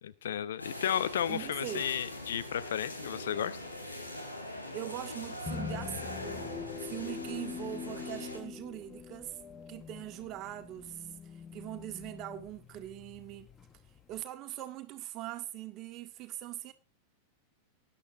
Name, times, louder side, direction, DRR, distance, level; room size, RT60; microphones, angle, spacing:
voice 1, 0.0-3.6, left 9 dB, 60° left, 0.9 m, -33 dB
sound 1, 0.6-8.4, left 1 dB, 85° left, 4.8 m, -42 dB
voice 2, 1.3-1.9 4.7-6.4 6.8-9.4 9.7-13.5 14.1-16.7, right 14 dB, 35° right, 1.9 m, -42 dB
sound 2, 5.5-14.2, left 6 dB, 20° left, 1.4 m, -44 dB
20.0 x 11.0 x 2.6 m
figure-of-eight pair, 90°, 0 cm